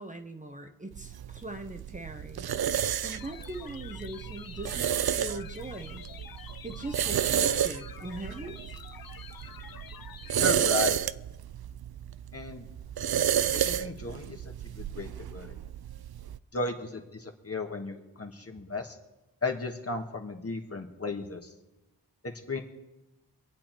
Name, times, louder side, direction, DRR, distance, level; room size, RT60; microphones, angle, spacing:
voice 1, 0.0-2.5 3.0-6.0 6.6-8.7, right 2 dB, 20° right, 5 dB, 1.0 m, -41 dB
sound 1, 0.9-16.4, right 9 dB, 65° right, 0.5 m, -31 dB
sound 2, 3.0-10.7, left 7 dB, 55° left, 0.8 m, -48 dB
voice 2, 10.4-11.0 12.3-12.7 13.5-15.6 16.5-19.0 19.4-21.5 22.2-22.6, left 3 dB, 35° left, 3 dB, 1.4 m, -35 dB
25.5 x 8.6 x 4.5 m, 1.0 s
wide cardioid pair, 95°, 41 cm